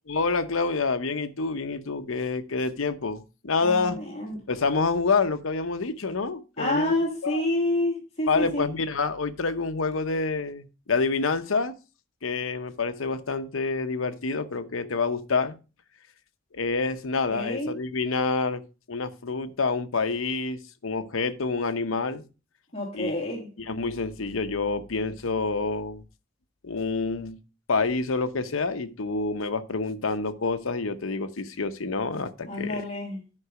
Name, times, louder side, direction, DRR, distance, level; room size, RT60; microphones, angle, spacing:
voice 1, 0.1-4.0 4.3-7.4 8.3-11.7 12.2-15.5 16.5-18.6 18.9-22.2 22.9-23.3 23.7-26.0 26.6-27.4 27.7-32.8, left 4 dB, 90° left, 0.9 m, -27 dB
voice 2, 3.6-4.4 6.6-8.7 17.3-17.8 22.7-23.5 32.4-33.2, left 1 dB, 30° left, 2.7 m, -28 dB
9.9 x 5.4 x 4.8 m
head